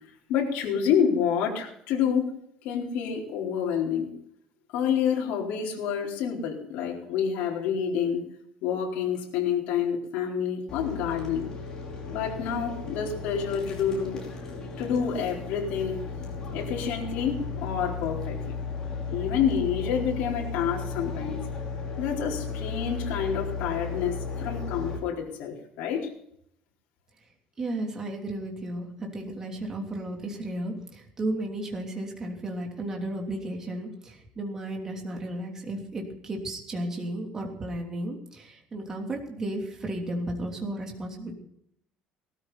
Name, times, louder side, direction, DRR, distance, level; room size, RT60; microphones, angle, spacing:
voice 1, 0.3-2.3 2.6-4.1 4.7-8.2 8.6-11.5 12.1-14.2 14.8-16.0 16.5-18.6 19.1-21.4 22.0-26.1, left 7 dB, 70° left, -2 dB, 4.3 m, -28 dB
sound 1, 10.7-25.0, left 5 dB, 25° left, 4.9 m, -35 dB
voice 2, 27.6-41.3, right 1 dB, 20° right, 1 dB, 3.1 m, -34 dB
18.5 x 13.5 x 4.2 m, 0.70 s
cardioid pair, 170°, 3 cm